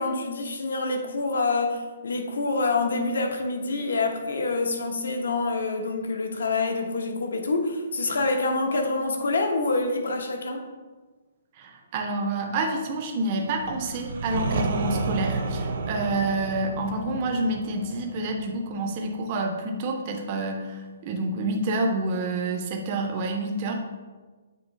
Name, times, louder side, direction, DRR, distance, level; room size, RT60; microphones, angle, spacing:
voice 1, 0.0-10.7, left 3 dB, 85° left, 4 dB, 1.0 m, -26 dB
voice 2, 11.6-23.8, right 2 dB, 20° right, 2 dB, 0.5 m, -28 dB
sound 1, 13.5-19.3, right 3 dB, 50° right, 0.7 m, -31 dB
7.3 x 2.9 x 5.1 m, 1.3 s
hypercardioid pair, 180°, 0 cm